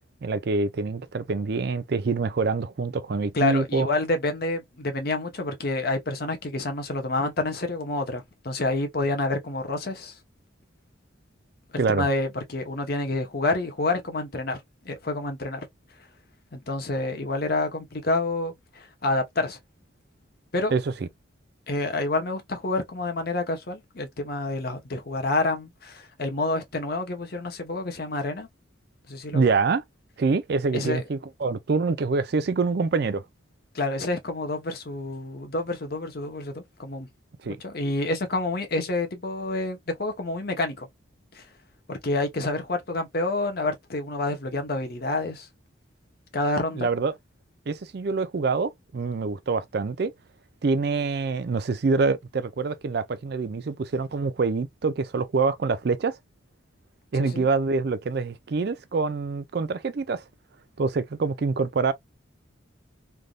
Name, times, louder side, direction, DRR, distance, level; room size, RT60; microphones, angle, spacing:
voice 1, 0.2-3.9 11.8-12.1 20.7-21.1 29.3-29.8 30.2-33.2 37.4-37.6 46.7-47.1 47.7-50.1 50.6-56.1 57.1-60.2 60.8-61.9, right 4 dB, 50° right, 0.4 m, -25 dB
voice 2, 3.3-10.2 11.7-15.6 16.5-19.6 20.5-20.7 21.7-28.5 29.1-29.4 30.7-31.0 33.7-37.1 37.6-40.9 41.3-41.4 41.9-45.5 46.3-46.9 57.2-57.5, left 2 dB, 50° left, 0.8 m, -28 dB
3.3 x 2.6 x 2.3 m
head